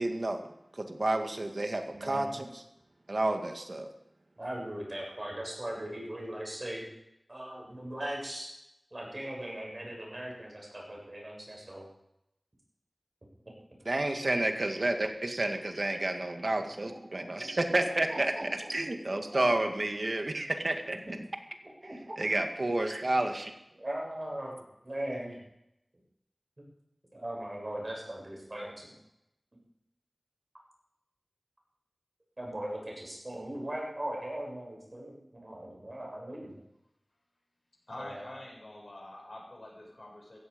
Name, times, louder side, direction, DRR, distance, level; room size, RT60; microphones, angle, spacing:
voice 1, 0.0-2.6 3.1-3.9 13.9-18.3 18.7-21.0 22.2-23.5, right 2 dB, 60° right, 5 dB, 1.9 m, -30 dB
voice 2, 1.9-2.4 4.4-6.9 7.3-8.5 8.9-11.9 17.1-17.5 18.1-18.7 19.1-19.4 21.0-21.1 21.8-22.2 23.7-24.5 24.8-25.4 27.1-28.9 32.4-36.5 38.0-38.3, right 1 dB, 45° right, -2 dB, 7.5 m, -39 dB
voice 3, 37.9-40.4, left 1 dB, 65° left, -2 dB, 7.0 m, -46 dB
16.0 x 15.0 x 5.3 m, 0.85 s
wide cardioid pair, 45°, 0 cm